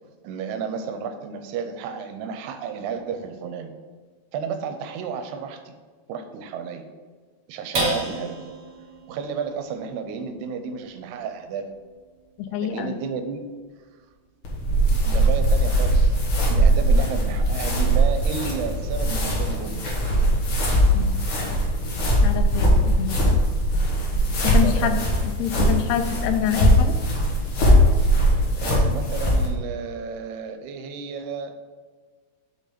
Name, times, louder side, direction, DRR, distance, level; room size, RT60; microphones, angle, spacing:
voice 1, 0.2-3.7 4.3-5.7 6.1-6.8 7.5-8.5 9.1-11.7 12.6-13.4 14.9-16.2 16.5-19.8 24.4-24.9 27.9-28.1 28.6-31.5, right 6 dB, 85° right, 7 dB, 2.7 m, -32 dB
sound 1, 7.7-14.4 14.9-15.0 15.4-15.9, right 2 dB, 55° right, 1.1 m, -35 dB
voice 2, 12.4-13.0 20.9-21.2 22.2-23.4 24.5-25.0 25.4-26.9, left 10 dB, 85° left, 8 dB, 2.7 m, -26 dB
sound 2, 14.4-29.5, right 1 dB, 60° left, 1.4 m, -20 dB
6.4 x 5.4 x 5.0 m, 1.5 s
omnidirectional pair, 4.6 m